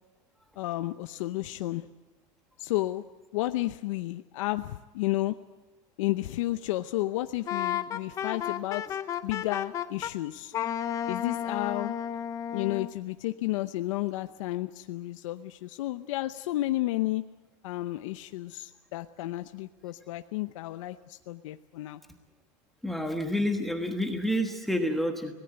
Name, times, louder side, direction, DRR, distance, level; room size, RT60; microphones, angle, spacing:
voice 1, 0.6-1.9 2.6-3.0 3.3-5.3 6.0-10.5 11.1-11.9 12.5-17.2 17.6-22.0, left 17 dB, 70° left, 9 dB, 0.8 m, -32 dB
Wind instrument woodwind instrument, 7.5-10.1 10.5-12.9, left 9 dB, 20° left, 0.7 m, -32 dB
voice 2, 22.8-25.3, equal, ahead, 4 dB, 1.3 m, -29 dB
25.0 x 18.0 x 7.9 m, 1.2 s
supercardioid pair, 170°, 17 cm